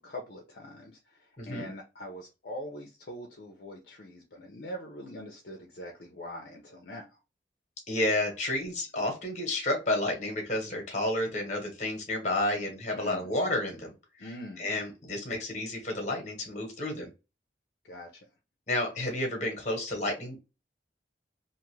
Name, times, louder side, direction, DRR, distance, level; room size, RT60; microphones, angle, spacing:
voice 1, 0.0-7.1 13.0-13.3 14.2-14.7 17.8-18.2, left 1 dB, 60° left, 0.6 m, -43 dB
voice 2, 1.4-1.7 7.9-13.9 14.2-14.3 14.6-17.1 18.7-20.4, left 1 dB, 40° left, 1.0 m, -31 dB
2.6 x 2.4 x 3.0 m
head